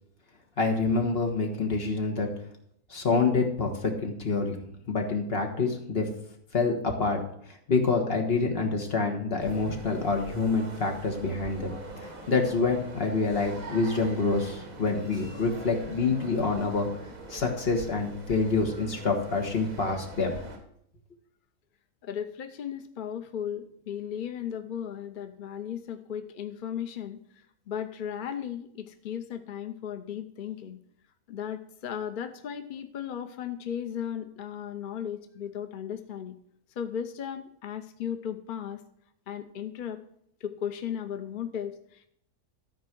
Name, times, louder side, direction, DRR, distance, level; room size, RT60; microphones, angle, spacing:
voice 1, 0.6-2.3 2.9-4.6 4.9-6.1 6.5-7.2 7.7-16.9 17.3-20.4, left 4 dB, 40° left, 2 dB, 1.7 m, -27 dB
sound 1, 9.4-20.6, right 2 dB, 65° right, 2.0 m, -43 dB
voice 2, 22.0-27.2 27.7-30.8 31.3-36.4 36.8-38.8 39.3-40.0 40.4-42.1, left 9 dB, 60° left, 8 dB, 0.5 m, -36 dB
13.5 x 4.6 x 6.0 m, 0.71 s
omnidirectional pair, 1.6 m